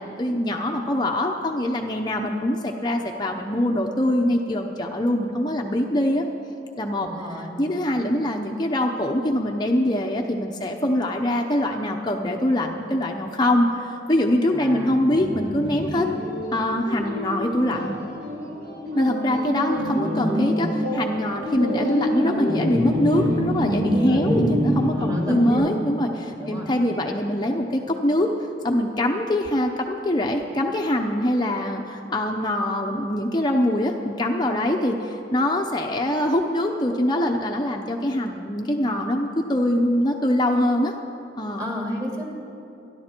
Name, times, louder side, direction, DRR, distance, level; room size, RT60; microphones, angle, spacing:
voice 1, 0.0-6.2 6.8-7.1 7.3-16.1 16.5-17.9 18.9-28.3 28.6-40.9 41.4-41.6, left 1 dB, 25° left, 1 dB, 0.7 m, -23 dB
voice 2, 7.0-7.6 14.5-15.0 24.0-24.4 24.9-25.8 26.4-26.7 41.6-42.2, equal, 20° right, -1 dB, 2.7 m, -32 dB
sound 1, 15.1-25.5, equal, 60° right, 3.6 m, -26 dB
28.0 x 11.5 x 4.5 m, 2.8 s
head